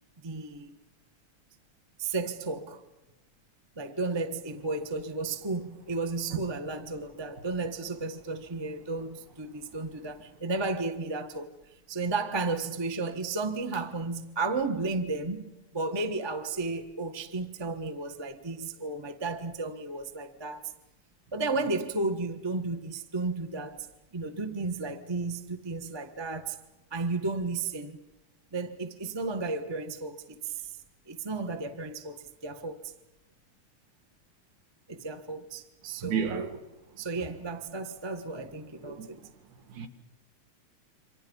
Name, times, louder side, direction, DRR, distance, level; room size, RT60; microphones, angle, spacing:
voice 1, 0.2-0.7 2.0-2.8 3.8-11.5 11.9-20.7 21.3-23.9 24.1-26.6 26.9-28.0 28.5-30.7 31.1-32.9 34.9-36.4 37.0-39.2, right 3 dB, 25° right, 0.5 m, -33 dB
voice 2, 36.0-36.6 38.9-39.1 39.7-39.9, right 7 dB, 90° right, 3.4 m, -31 dB
29.0 x 26.0 x 5.5 m
omnidirectional pair, 3.3 m